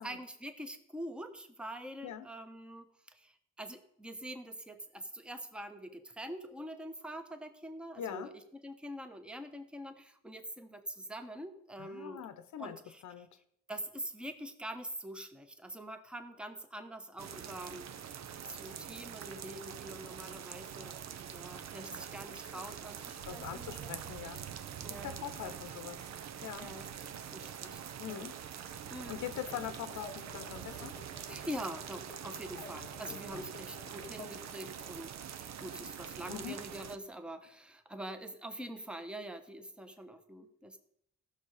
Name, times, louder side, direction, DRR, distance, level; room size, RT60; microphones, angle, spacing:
voice 1, 0.0-12.2 12.6-13.2 13.7-17.9 18.4-24.1 24.8-25.5 26.6-27.8 28.1-28.4 28.9-29.2 31.3-40.8, right 1 dB, 5° right, 7 dB, 1.0 m, -45 dB
voice 2, 8.0-8.3 11.8-13.3 23.3-24.4 24.9-26.1 26.4-26.7 28.0-28.3 29.1-31.0 32.5-32.6 33.1-33.5 36.3-36.6, left 10 dB, 70° left, 11 dB, 0.8 m, -43 dB
sound 1, 17.2-37.0, right 9 dB, 60° right, 0.8 m, -45 dB
sound 2, 29.4-34.5, left 4 dB, 20° left, 1.3 m, -53 dB
14.5 x 6.5 x 4.9 m, 0.73 s
cardioid pair, 90°, 30 cm